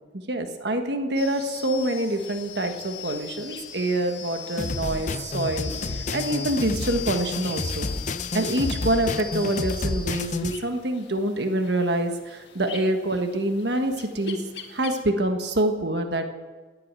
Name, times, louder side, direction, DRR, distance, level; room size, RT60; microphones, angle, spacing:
voice 1, 0.1-7.9 8.3-14.4 14.7-16.3, right 1 dB, 60° right, 5 dB, 1.5 m, -26 dB
sound 1, 1.2-15.0, left 7 dB, 65° left, 1.7 m, -40 dB
sound 2, 4.6-10.6, left 3 dB, 40° left, 0.7 m, -30 dB
18.5 x 8.7 x 8.9 m, 1.4 s
head